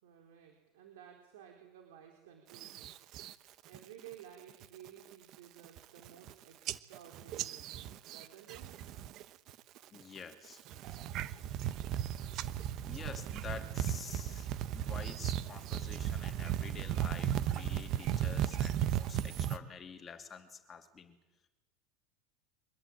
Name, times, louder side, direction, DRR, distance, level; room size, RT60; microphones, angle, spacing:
voice 1, 0.0-3.0 3.7-8.8, right 9 dB, 80° right, 2 dB, 4.1 m, -55 dB
sound 1, 2.5-3.3 3.7-4.1 4.5-4.9 5.3-5.4 5.6-6.3 6.7-9.2 9.5-10.0 10.5-19.6, right 11 dB, 40° right, 0.9 m, -36 dB
voice 2, 9.9-10.6 11.1-11.2 12.8-14.5 14.7-21.2, left 6 dB, 20° left, 5 dB, 2.6 m, -48 dB
24.0 x 20.5 x 8.9 m, 1.0 s
supercardioid pair, 160°, 0 cm